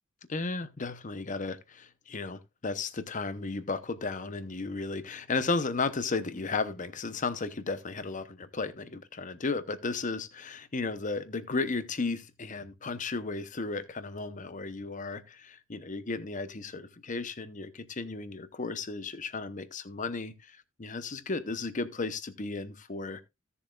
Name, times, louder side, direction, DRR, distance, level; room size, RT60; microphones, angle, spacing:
voice 1, 0.3-23.2, left 3 dB, 40° left, 0.9 m, -34 dB
16.0 x 7.0 x 2.4 m
head